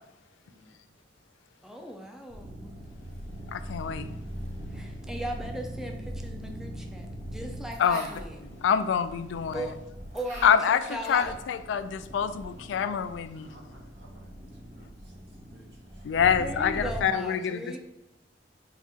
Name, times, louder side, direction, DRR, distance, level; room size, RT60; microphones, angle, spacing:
voice 1, 0.4-0.8 13.3-14.9 15.5-15.7 15.9-16.0, right 1 dB, 70° right, -2 dB, 1.1 m, -57 dB
voice 2, 1.6-2.8 4.7-8.4 9.5-9.8 10.1-11.3 16.4-17.8, equal, 5° right, 2 dB, 0.4 m, -38 dB
sound 1, 2.3-17.0, equal, 40° right, 1.0 m, -41 dB
voice 3, 3.5-4.1 7.8-8.1 8.6-9.7 10.4-13.5 16.0-17.8, left 7 dB, 90° left, 11 dB, 0.3 m, -26 dB
4.0 x 2.5 x 3.6 m, 0.95 s
head